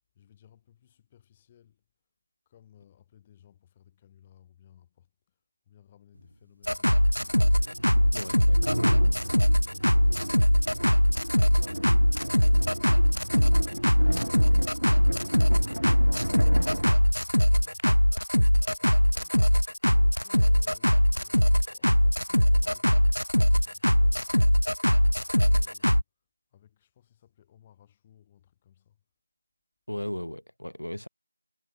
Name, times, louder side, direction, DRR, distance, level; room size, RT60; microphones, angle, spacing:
voice 1, 0.1-1.8 2.4-5.4 5.6-7.5 15.7-18.1 18.5-24.8 25.1-26.0 26.5-29.0, left 10 dB, 5° left, 6.5 m, -60 dB
sound 1, 6.2-6.3 7.2-17.8, equal, 85° right, 1.1 m, -34 dB
sound 2, 6.6-26.0, equal, 90° left, 0.4 m, -22 dB
voice 2, 8.1-8.6 29.9-31.1, left 1 dB, 60° left, 7.8 m, -36 dB
figure-of-eight pair, 180°, 0 cm